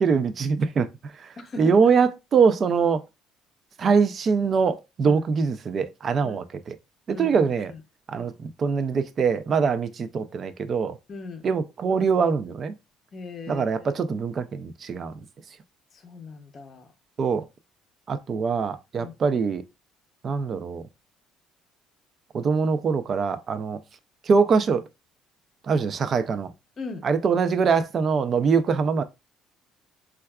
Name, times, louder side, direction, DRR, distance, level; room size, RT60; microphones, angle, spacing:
voice 1, 0.0-3.0 3.8-6.8 7.1-7.7 8.1-11.0 11.4-12.7 13.5-15.1 17.2-17.5 18.1-19.7 20.2-20.8 22.3-23.8 24.3-24.8 25.7-26.5 27.0-29.0, right 5 dB, 35° right, 0.4 m, -23 dB
voice 2, 1.4-1.8 5.1-5.2 6.2-6.4 7.1-7.8 11.1-11.4 13.1-13.9 15.9-16.9 19.0-19.1 26.8-27.1, left 3 dB, 30° left, 0.7 m, -39 dB
4.4 x 2.3 x 2.2 m
cardioid pair, 145°, 0 cm